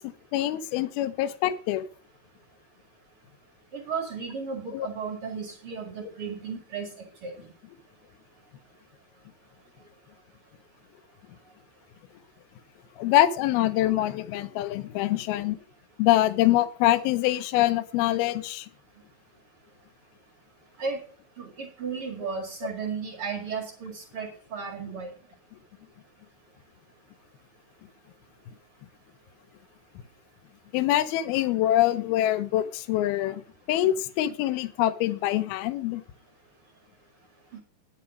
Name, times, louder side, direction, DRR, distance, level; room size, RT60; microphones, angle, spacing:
voice 1, 0.0-1.9 4.7-4.9 13.0-15.6 16.0-18.7 30.7-33.4 33.7-36.0, left 14 dB, 85° left, 2.2 m, -24 dB
voice 2, 3.7-7.3 20.8-21.0 21.4-25.1, right 5 dB, 50° right, 1.7 m, -34 dB
10.0 x 7.4 x 5.0 m
omnidirectional pair, 5.4 m